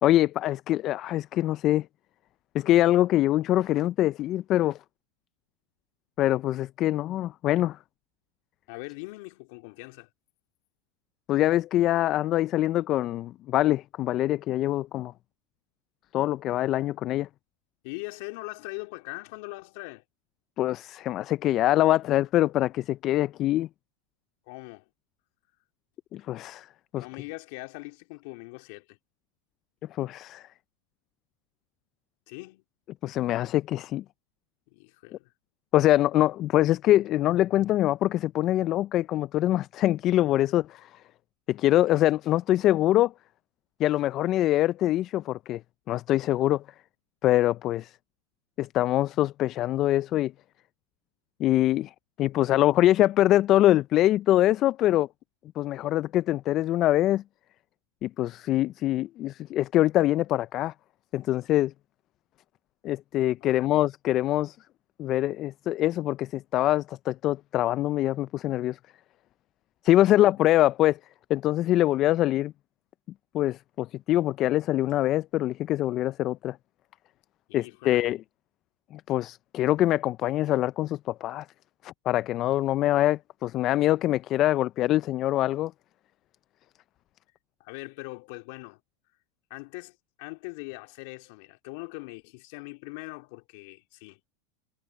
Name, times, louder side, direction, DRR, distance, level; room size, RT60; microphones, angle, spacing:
voice 1, 0.0-1.9 2.5-4.8 6.2-7.8 11.3-15.1 16.1-17.3 20.6-23.7 26.1-26.7 26.9-27.1 30.0-30.4 33.0-34.0 35.7-40.9 41.5-43.1 43.8-45.6 45.9-46.6 47.2-47.9 48.6-50.3 51.4-51.9 52.2-55.1 55.6-57.2 58.0-60.7 61.1-61.7 62.8-64.6 65.0-68.8 69.8-71.0 71.3-72.5 73.3-76.6 77.5-78.2 78.9-81.5 81.8-85.7, left 14 dB, 40° left, 0.4 m, -24 dB
voice 2, 8.7-10.1 17.8-20.0 24.4-24.9 27.0-29.0 32.3-32.6 34.7-35.3 63.4-63.8 77.5-78.1 87.6-88.8 89.5-94.3, left 27 dB, 60° left, 3.4 m, -41 dB
hypercardioid pair, 110°, 0 cm